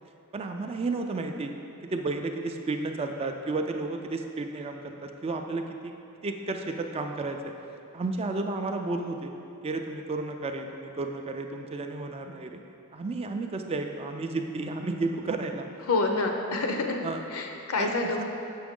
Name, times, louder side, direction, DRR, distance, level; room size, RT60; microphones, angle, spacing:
voice 1, 0.3-1.5 1.8-5.9 6.2-7.5 7.9-9.3 9.6-12.6 12.9-15.7 17.0-17.2 17.8-17.9 18.2-18.3, right 3 dB, 25° right, 4 dB, 0.3 m, -32 dB
voice 2, 15.9-17.0 17.3-18.2, left 3 dB, 70° left, 3 dB, 0.7 m, -27 dB
6.7 x 6.1 x 3.6 m, 2.7 s
head